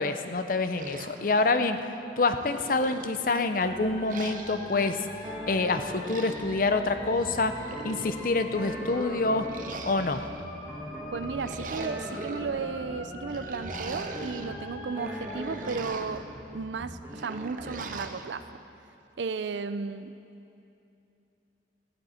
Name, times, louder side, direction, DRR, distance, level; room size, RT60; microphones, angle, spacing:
voice 1, 0.0-1.8 2.2-5.0 5.5-7.5 7.8-9.5 9.9-10.2, left 3 dB, 50° left, 9 dB, 0.6 m, -26 dB
sound 1, 0.7-1.9 2.3-3.5 4.1-4.8 5.8-6.6 7.4-8.4 9.4-10.4 11.2-12.4 13.3-14.5 14.9-16.3 17.1-18.3, right 3 dB, 45° right, 0.7 m, -42 dB
sound 2, 3.6-15.8, equal, 25° left, 1.5 m, -42 dB
sound 3, 5.2-18.1, equal, 15° right, 1.3 m, -42 dB
voice 2, 11.1-16.2 16.5-18.5 19.2-20.1, right 5 dB, 80° right, 12 dB, 0.5 m, -34 dB
15.0 x 14.0 x 4.3 m, 2.8 s
head